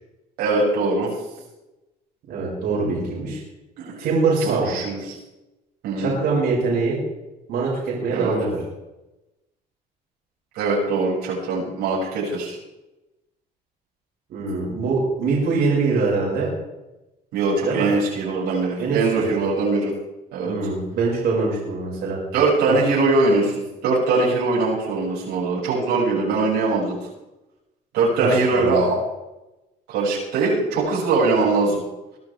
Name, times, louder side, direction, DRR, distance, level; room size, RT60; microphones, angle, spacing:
voice 1, 0.4-1.1 3.8-4.1 4.6-5.2 5.8-6.1 8.1-8.3 10.5-12.6 17.3-19.9 20.3-20.5 22.3-27.0 27.9-29.0 29.9-31.8, right 3 dB, 90° right, -5 dB, 6.4 m, -21 dB
voice 2, 2.3-3.4 4.0-4.7 6.0-7.0 7.5-8.6 14.3-16.5 17.6-17.9 18.8-19.2 20.4-22.2 22.7-22.8 28.2-28.8, right 4 dB, 70° right, -4 dB, 5.9 m, -23 dB
23.0 x 11.0 x 3.5 m, 1.0 s
cardioid pair, 110°, 17 cm